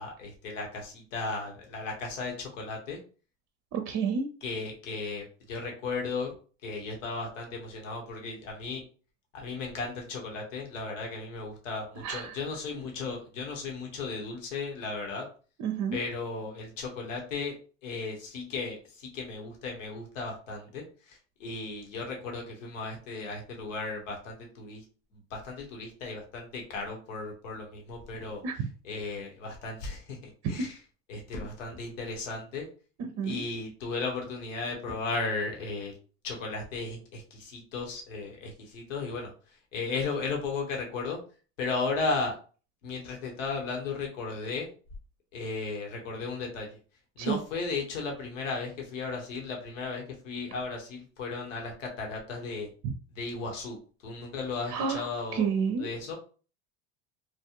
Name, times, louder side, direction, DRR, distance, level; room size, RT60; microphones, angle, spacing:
voice 1, 0.0-3.0 4.4-6.3 6.6-8.8 9.3-15.2 15.9-17.5 17.8-24.8 25.1-30.8 31.1-32.7 33.2-35.9 36.2-39.3 39.7-41.2 41.6-42.4 42.8-44.7 45.3-46.8 47.2-52.7 53.1-53.8 54.0-55.5 55.8-56.1, left 4 dB, 80° left, 1 dB, 1.3 m, -35 dB
voice 2, 3.7-4.3 12.0-12.4 15.6-16.0 28.4-28.6 30.6-30.7 33.2-33.4 47.2-47.4 52.8-52.9 54.7-55.1 55.3-55.9, right 6 dB, 45° right, 6 dB, 0.5 m, -29 dB
3.2 x 2.3 x 2.9 m, 0.37 s
hypercardioid pair, 85°, 37 cm